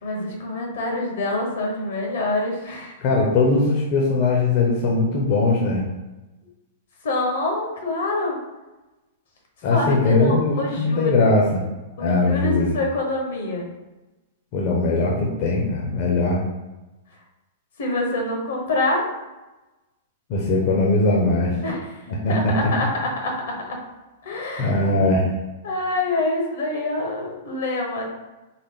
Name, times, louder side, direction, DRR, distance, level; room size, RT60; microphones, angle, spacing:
voice 1, 0.0-3.0 7.0-8.4 9.7-11.3 12.0-13.7 17.8-19.1 21.6-21.9 22.3-23.8 24.2-24.8 25.6-28.0, left 2 dB, 75° left, 0 dB, 1.0 m, -26 dB
voice 2, 3.0-5.8 9.6-11.6 12.0-12.8 14.5-16.4 20.3-21.6 22.1-22.6 24.6-25.3, left 2 dB, 45° left, -2 dB, 0.7 m, -20 dB
3.8 x 2.1 x 3.6 m, 1.1 s
hypercardioid pair, 140°, 0 cm